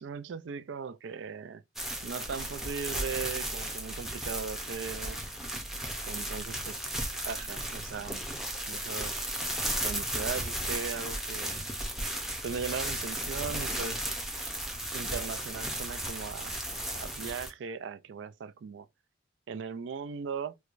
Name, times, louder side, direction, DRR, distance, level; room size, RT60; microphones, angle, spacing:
voice 1, 0.0-1.6 2.0-5.2 6.1-6.7 7.2-8.2 8.7-9.2 9.8-11.7 12.4-14.1 14.9-16.5 16.9-18.9 19.5-20.5, right 6 dB, 80° right, 0.4 m, -38 dB
sound 1, 1.8-17.5, right 1 dB, ahead, 0.5 m, -35 dB
4.5 x 2.2 x 2.5 m
head